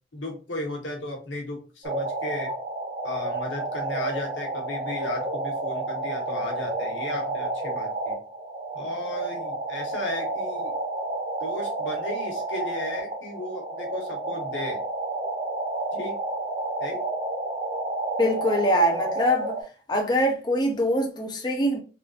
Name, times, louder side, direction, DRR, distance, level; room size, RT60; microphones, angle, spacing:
voice 1, 0.1-2.5 3.0-8.2 8.7-10.7 11.4-14.8 15.9-16.2 16.8-17.0, left 1 dB, 90° left, 1.2 m, -35 dB
sound 1, 1.8-19.6, right 2 dB, 40° right, 0.8 m, -30 dB
voice 2, 18.2-19.5 19.9-21.8, equal, 25° left, 0.5 m, -23 dB
3.6 x 2.6 x 2.3 m
head